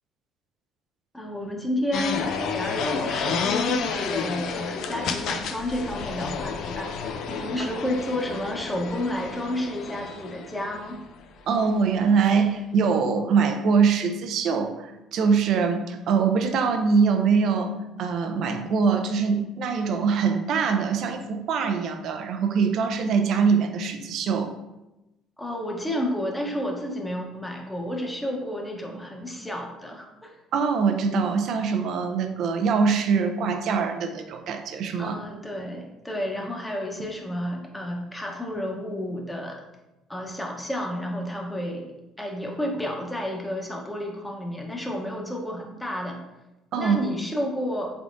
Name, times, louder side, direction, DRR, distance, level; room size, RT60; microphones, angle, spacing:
voice 1, 1.1-6.9 7.3-11.0 25.4-30.3 35.0-39.6 40.1-41.9 42.2-46.2 46.7-47.9, left 1 dB, 10° left, 1 dB, 0.8 m, -31 dB
sound 1, 1.9-10.9, left 5 dB, 65° left, 0.4 m, -30 dB
voice 2, 11.5-17.7 18.0-24.5 30.5-35.2 46.7-47.0, right 5 dB, 65° right, 6 dB, 0.4 m, -23 dB
3.6 x 3.5 x 2.5 m, 0.97 s
supercardioid pair, 80°, 0 cm